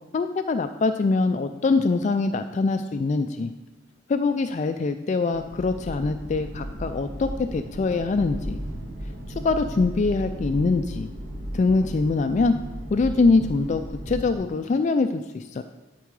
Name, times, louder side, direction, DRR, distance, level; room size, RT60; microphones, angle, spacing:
voice 1, 0.1-3.5 4.1-8.6 9.4-11.1 11.5-12.6 12.9-15.6, left 3 dB, 40° left, 8 dB, 0.3 m, -23 dB
sound 1, 5.3-14.3, equal, 70° right, 1.8 m, -35 dB
12.0 x 4.6 x 4.7 m, 1.1 s
head